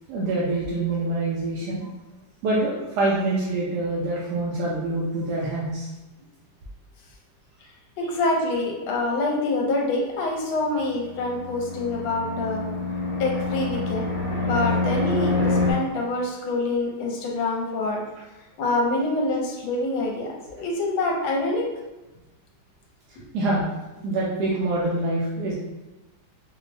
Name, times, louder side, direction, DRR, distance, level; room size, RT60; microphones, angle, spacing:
voice 1, 0.1-1.8 2.4-5.9 23.3-23.7 24.0-25.5, right 2 dB, 70° right, -5 dB, 1.0 m, -25 dB
voice 2, 8.0-12.6 13.2-14.1 14.4-18.0 18.6-20.3 20.6-21.7 24.0-24.2, left 2 dB, 80° left, -1 dB, 1.5 m, -26 dB
Fixed-wing aircraft airplane, 10.8-15.7, left 2 dB, 50° left, 1.3 m, -26 dB
4.7 x 2.1 x 2.6 m, 1.0 s
omnidirectional pair, 2.3 m